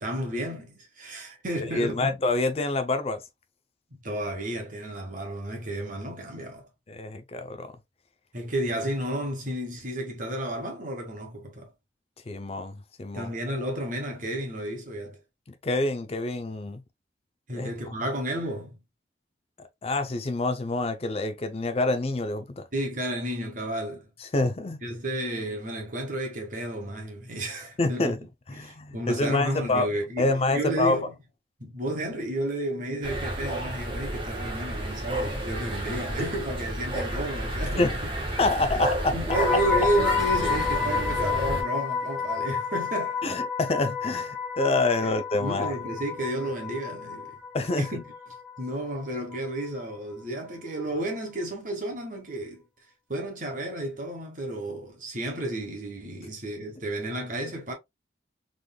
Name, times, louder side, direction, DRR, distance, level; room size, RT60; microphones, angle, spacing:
voice 1, 0.0-2.1 3.9-6.7 8.3-11.7 13.1-15.2 17.5-18.8 22.7-24.1 24.8-28.1 28.5-31.1 31.6-38.1 39.1-43.2 45.0-45.1 45.4-47.4 47.8-48.0 48.6-52.6 53.1-57.7, right 1 dB, 45° right, 1.3 m, -32 dB
voice 2, 1.6-3.2 6.9-7.7 12.3-13.3 15.5-16.8 17.5-17.7 19.6-22.6 24.2-24.8 27.8-28.2 28.5-29.9 30.2-31.0 37.8-38.0 38.4-39.4 43.2-45.7 47.5-47.8, left 2 dB, 35° left, 0.5 m, -27 dB
sound 1, 33.0-41.6, right 1 dB, 30° right, 1.3 m, -31 dB
sound 2, 39.3-49.4 49.6-49.9, left 6 dB, ahead, 0.8 m, -30 dB
3.8 x 3.3 x 2.2 m
head